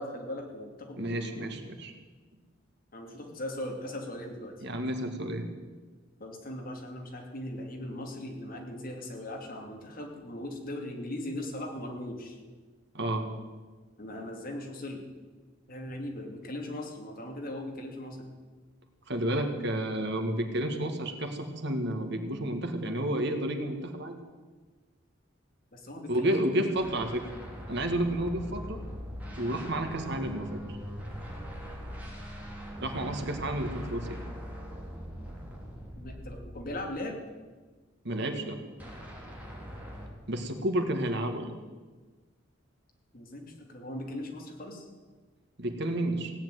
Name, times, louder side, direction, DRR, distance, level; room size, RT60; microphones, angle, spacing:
voice 1, 0.0-1.6 2.9-4.5 6.2-12.4 14.0-15.1 15.7-18.3 25.7-26.6 36.0-37.2 43.1-44.9, left 1 dB, 50° left, 2 dB, 2.8 m, -39 dB
voice 2, 1.0-1.9 4.6-5.4 12.9-13.3 19.1-24.2 26.1-27.3 27.7-28.8 29.3-30.6 32.8-34.2 38.0-38.6 40.3-41.5 45.6-46.3, right 1 dB, 60° right, 5 dB, 1.9 m, -31 dB
sound 1, 26.8-37.0 38.8-40.1, equal, 10° right, 3.4 m, -41 dB
17.0 x 9.0 x 9.3 m, 1.4 s
head